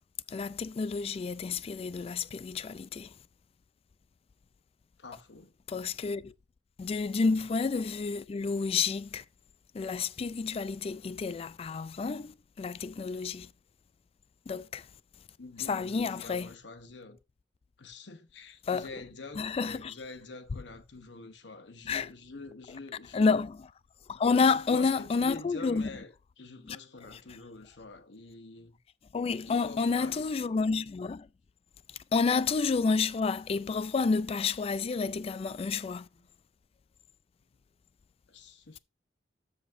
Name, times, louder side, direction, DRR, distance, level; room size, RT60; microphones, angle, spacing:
voice 1, 0.3-3.1 5.7-6.3 6.8-9.2 9.7-13.5 14.5-14.8 15.7-16.5 18.7-18.8 19.4-19.9 21.9-22.1 23.1-23.5 24.1-25.9 26.7-26.8 29.1-31.3 32.1-36.1, left 4 dB, 35° left, 0.3 m, -29 dB
voice 2, 5.0-5.5 7.2-7.5 15.4-17.2 17.8-23.4 24.3-28.8 29.5-30.3 36.1-36.3 38.3-38.8, left 3 dB, 80° left, 1.0 m, -46 dB
13.5 x 5.0 x 2.6 m
head